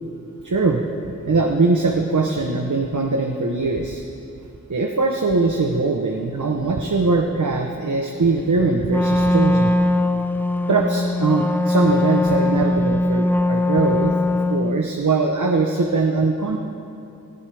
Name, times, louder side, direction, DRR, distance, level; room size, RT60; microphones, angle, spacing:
voice 1, 0.4-0.8 1.3-4.0 4.7-9.7 10.7-16.6, right 3 dB, 65° right, 2 dB, 0.9 m, -21 dB
Wind instrument woodwind instrument, 8.9-14.8, left 2 dB, 5° left, 0.4 m, -20 dB
19.0 x 14.5 x 3.5 m, 2.8 s
wide cardioid pair, 55°, 33 cm